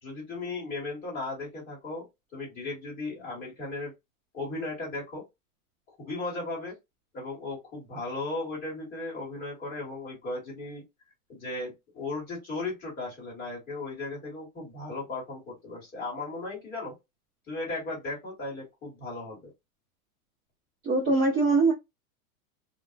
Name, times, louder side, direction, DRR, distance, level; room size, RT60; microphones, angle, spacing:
voice 1, 0.0-2.0 2.3-3.9 4.3-5.2 5.9-6.7 7.1-10.8 11.3-16.9 17.5-19.5, left 2 dB, 20° left, 1.4 m, -36 dB
voice 2, 20.8-21.7, right 3 dB, 20° right, 0.6 m, -22 dB
2.4 x 2.0 x 2.4 m
supercardioid pair, 165°, 43 cm